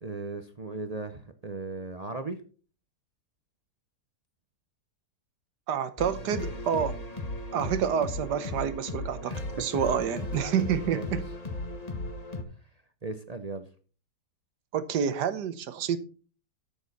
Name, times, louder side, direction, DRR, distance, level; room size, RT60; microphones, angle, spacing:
voice 1, 0.0-2.4 9.2-10.2 10.9-11.2 13.0-13.7, right 3 dB, 40° right, 0.5 m, -38 dB
voice 2, 5.7-7.0 7.5-11.2 14.7-16.0, right 8 dB, 90° right, 1.6 m, -28 dB
sound 1, 6.0-12.4, left 2 dB, 25° left, 1.5 m, -36 dB
12.5 x 7.0 x 4.1 m
omnidirectional pair, 1.7 m